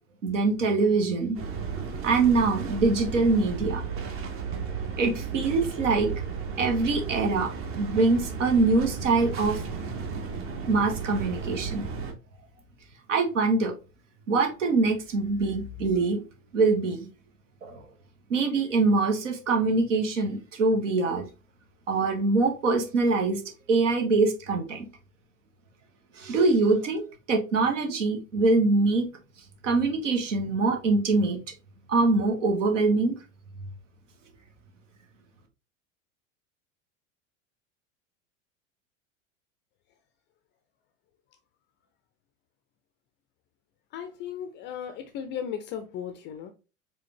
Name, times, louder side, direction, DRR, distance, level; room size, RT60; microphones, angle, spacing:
voice 1, 0.2-1.4 2.0-3.8 5.0-6.1 6.6-7.5 7.8-9.6 10.7-11.8 13.1-13.7 14.3-16.2 16.5-17.1 17.6-17.8 18.3-21.2 21.9-23.4 23.7-24.9 26.2-27.0 27.3-29.1 29.6-31.4 31.9-33.2, right 3 dB, 65° right, 1.4 m, -24 dB
sound 1, 1.3-12.1, right 5 dB, 35° right, 1.1 m, -34 dB
voice 2, 43.9-46.5, left 8 dB, 30° left, 0.5 m, -36 dB
4.9 x 3.7 x 2.8 m
figure-of-eight pair, 80°, 40 cm